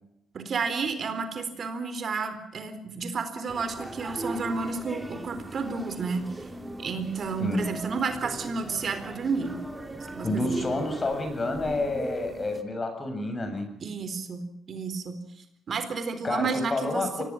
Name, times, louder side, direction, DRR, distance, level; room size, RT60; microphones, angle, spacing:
voice 1, 0.3-6.2 6.8-9.6 10.1-10.7 13.8-15.2 15.7-17.2, right 4 dB, 50° right, 9 dB, 4.1 m, -31 dB
sound 1, 3.5-12.6, right 2 dB, 15° right, 2.9 m, -39 dB
voice 2, 7.4-7.8 10.2-13.7 16.2-17.2, left 2 dB, 30° left, 7 dB, 7.4 m, -29 dB
25.0 x 18.5 x 7.2 m, 0.76 s
cardioid pair, 90°, 0 cm